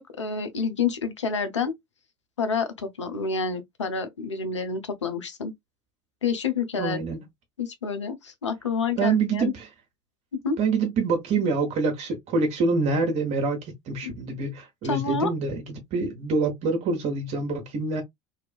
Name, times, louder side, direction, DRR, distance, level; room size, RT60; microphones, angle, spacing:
voice 1, 0.0-1.7 2.4-5.5 6.2-7.0 7.6-9.5 10.4-10.6 14.0-14.1 14.8-15.3, left 5 dB, 85° left, 0.5 m, -28 dB
voice 2, 6.8-7.2 9.0-9.6 10.6-15.6 15.9-18.0, right 4 dB, 50° right, 0.8 m, -26 dB
2.7 x 2.3 x 2.3 m
figure-of-eight pair, 70°, 15 cm